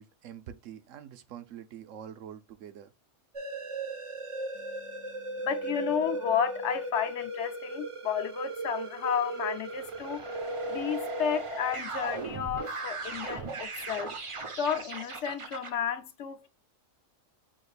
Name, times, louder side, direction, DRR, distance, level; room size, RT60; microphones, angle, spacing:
voice 1, 0.0-2.9, right 9 dB, 75° right, 1.0 m, -45 dB
sound 1, 3.3-15.7, right 2 dB, 40° right, 0.4 m, -37 dB
voice 2, 4.6-10.4 10.7-14.1 14.6-16.5, left 8 dB, 65° left, 0.8 m, -32 dB
6.2 x 2.5 x 3.2 m
omnidirectional pair, 1.3 m